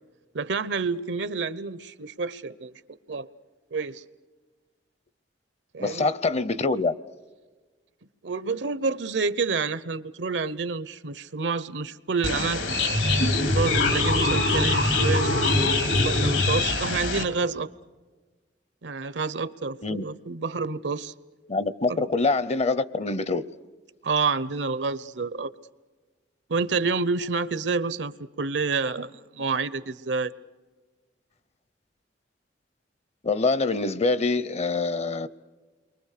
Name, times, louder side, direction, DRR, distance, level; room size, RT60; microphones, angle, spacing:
voice 1, 0.3-2.7 3.1-3.3 3.7-4.0 5.7-6.1 8.2-12.8 13.1-17.7 18.8-21.1 21.9-22.0 24.0-25.5 26.5-30.3, right 4 dB, 80° right, 0.8 m, -28 dB
voice 2, 5.8-6.9 19.8-20.1 21.5-23.4 33.2-35.3, left 3 dB, 35° left, 0.7 m, -25 dB
sound 1, 12.2-17.2, left 2 dB, 80° left, 3.0 m, -23 dB
29.5 x 23.5 x 6.6 m
head